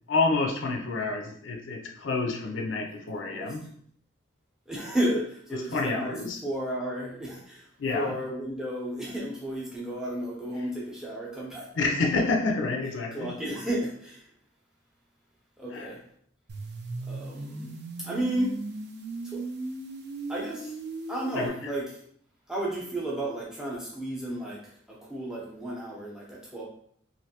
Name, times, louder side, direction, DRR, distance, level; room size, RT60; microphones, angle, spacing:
voice 1, 0.1-3.6 5.5-6.4 7.8-8.1 10.6-10.7 11.8-13.4 15.7-15.9 21.3-21.7, left 3 dB, 70° left, 2 dB, 0.4 m, -28 dB
voice 2, 3.2-3.5 4.7-6.2 6.4-11.7 13.1-14.3 15.6-16.0 17.1-17.7 18.0-18.5 19.2-19.4 20.3-20.8 21.1-21.9 22.5-26.6, right 1 dB, 5° right, -5 dB, 0.7 m, -33 dB
sound 1, 16.5-21.5, right 2 dB, 55° right, 0.4 m, -37 dB
3.2 x 2.6 x 2.8 m, 0.63 s
head